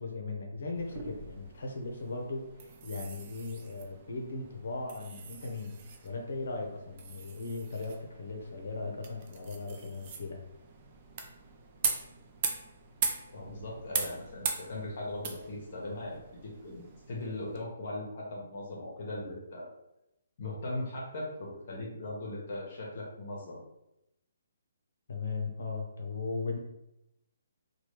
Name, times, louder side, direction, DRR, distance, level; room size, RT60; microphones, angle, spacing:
voice 1, 0.0-5.8 6.0-10.4 25.1-26.6, left 3 dB, 70° left, 2 dB, 0.8 m, -38 dB
sound 1, 0.7-17.6, right 5 dB, 35° right, 0.4 m, -40 dB
voice 2, 13.3-19.7 20.4-23.6, left 1 dB, 50° left, -3 dB, 1.1 m, -39 dB
3.0 x 2.3 x 3.2 m, 0.87 s
hypercardioid pair, 155°, 0 cm